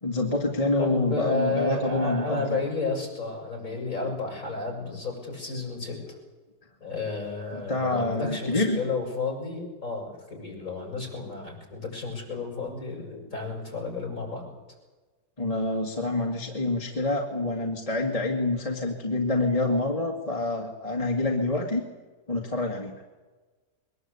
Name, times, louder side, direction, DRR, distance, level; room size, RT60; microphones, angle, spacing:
voice 1, 0.0-2.4 7.7-8.8 15.4-21.8 22.3-22.9, left 2 dB, 20° left, 0 dB, 1.9 m, -27 dB
voice 2, 0.8-6.2 6.8-14.5, left 3 dB, 55° left, 0 dB, 7.6 m, -31 dB
23.0 x 19.5 x 8.3 m, 1.3 s
omnidirectional pair, 1.7 m